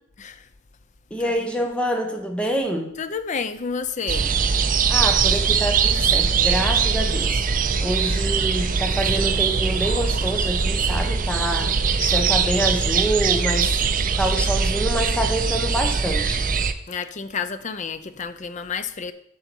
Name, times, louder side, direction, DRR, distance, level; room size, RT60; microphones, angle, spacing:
voice 1, 0.2-0.5 1.2-1.3 1.6-1.7 3.0-4.3 16.9-19.1, left 6 dB, 35° left, 0.4 m, -30 dB
voice 2, 1.1-2.9 4.9-7.4 7.8-13.8 14.2-16.4, equal, 5° left, 0.9 m, -26 dB
sound 1, 4.1-16.7, right 5 dB, 40° right, 0.5 m, -21 dB
8.1 x 6.6 x 4.5 m
head